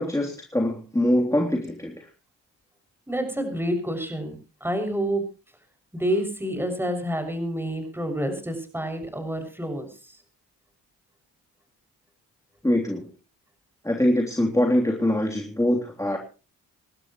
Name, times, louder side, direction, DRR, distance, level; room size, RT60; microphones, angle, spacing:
voice 1, 0.0-2.1 12.6-13.1 13.8-16.2, left 1 dB, 10° left, 0 dB, 3.4 m, -23 dB
voice 2, 3.1-4.3 4.6-5.2 5.9-9.9, equal, 5° right, 6 dB, 6.7 m, -28 dB
26.5 x 12.0 x 3.2 m, 0.34 s
supercardioid pair, 60°, 35 cm